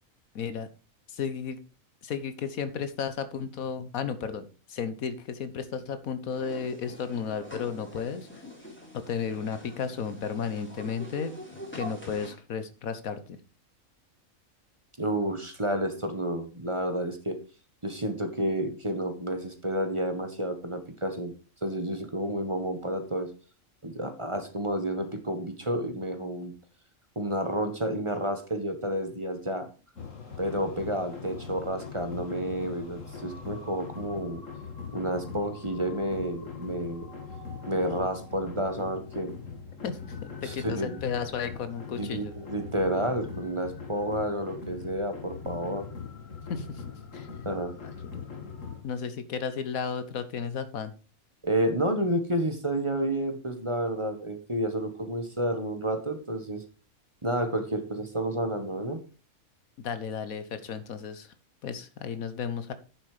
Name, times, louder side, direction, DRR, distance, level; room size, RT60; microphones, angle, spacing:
voice 1, 0.3-0.7 1.1-1.6 2.0-8.4 8.9-11.3 11.7-13.4 39.8-40.1 40.4-42.3 46.5-46.8 47.1-47.3 47.8-47.9 48.8-50.9 59.8-61.3 61.6-62.7, left 6 dB, 80° left, 12 dB, 1.4 m, -33 dB
sound 1, 6.3-12.3, equal, 10° left, 3.5 m, -44 dB
voice 2, 15.0-17.4 17.8-21.3 21.6-23.3 23.8-26.5 27.1-29.7 30.4-34.4 34.9-37.1 37.7-39.3 40.4-41.0 42.0-45.9 47.4-47.7 51.4-56.6 57.2-59.0, right 1 dB, 20° right, 7 dB, 1.4 m, -30 dB
sound 2, 30.0-48.8, left 5 dB, 65° left, 2.3 m, -41 dB
9.6 x 7.4 x 4.9 m, 0.35 s
omnidirectional pair, 1.5 m